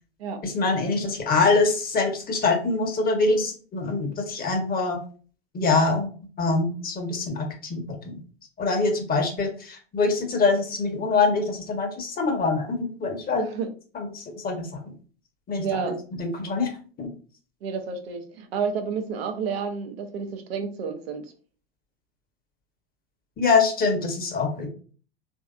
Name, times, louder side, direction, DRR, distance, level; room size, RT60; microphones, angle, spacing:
voice 1, 0.4-5.0 5.5-6.1 6.4-8.2 8.6-13.5 13.9-14.7 15.5-15.9 16.2-16.7 17.0-17.1 23.4-24.7, left 3 dB, 30° left, 3 dB, 1.0 m, -24 dB
voice 2, 13.3-13.7 15.6-16.0 17.6-21.2, right 6 dB, 75° right, 5 dB, 0.7 m, -30 dB
3.1 x 2.7 x 2.3 m, 0.39 s
hypercardioid pair, 85°, 31 cm